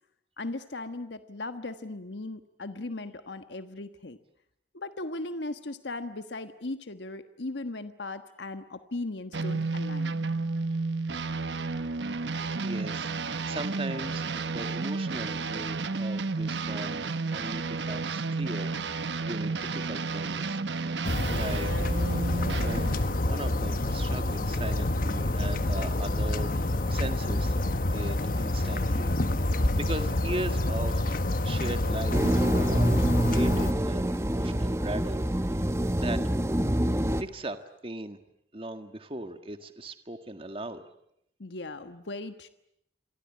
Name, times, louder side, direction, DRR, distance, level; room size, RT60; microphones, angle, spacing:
voice 1, 0.4-4.2 4.7-10.2 41.4-42.5, left 2 dB, 80° left, 9 dB, 1.4 m, -37 dB
sound 1, 9.3-23.1, right 3 dB, 85° right, 1.1 m, -32 dB
voice 2, 12.6-20.6 21.3-21.7 22.4-27.6 27.9-29.1 29.5-32.9 33.3-36.2 37.2-37.6 37.8-38.2 38.5-40.8, right 1 dB, 30° right, 8 dB, 1.8 m, -39 dB
sound 2, 21.0-33.7, left 1 dB, 50° left, 1.1 m, -28 dB
sound 3, 32.1-37.2, right 1 dB, 15° right, 1.1 m, -26 dB
28.5 x 23.5 x 8.7 m, 0.76 s
head